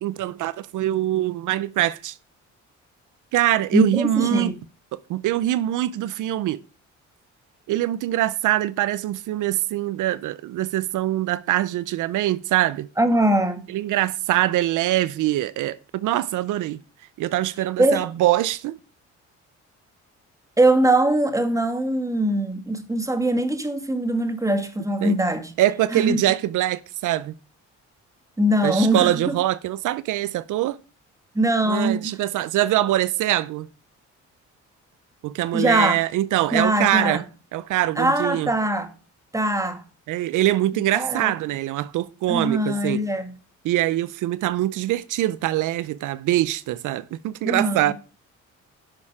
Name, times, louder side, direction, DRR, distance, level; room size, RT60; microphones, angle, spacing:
voice 1, 0.0-2.1 3.3-4.5 5.1-6.6 7.7-12.9 13.7-16.8 17.2-18.8 25.0-25.1 25.6-27.3 28.6-30.8 31.7-33.7 35.2-37.2 37.5-38.5 40.1-43.0 43.6-47.9, right 14 dB, 85° right, 0.7 m, -23 dB
voice 2, 3.7-4.6 13.0-13.7 17.8-18.1 20.6-25.5 25.9-26.2 28.4-29.4 31.3-32.2 35.5-36.0 36.5-37.2 38.0-38.9 39.3-39.8 40.7-41.3 42.3-43.4 47.4-47.9, right 1 dB, 10° right, 2.1 m, -22 dB
11.5 x 6.5 x 4.9 m
cardioid pair, 90°, 30 cm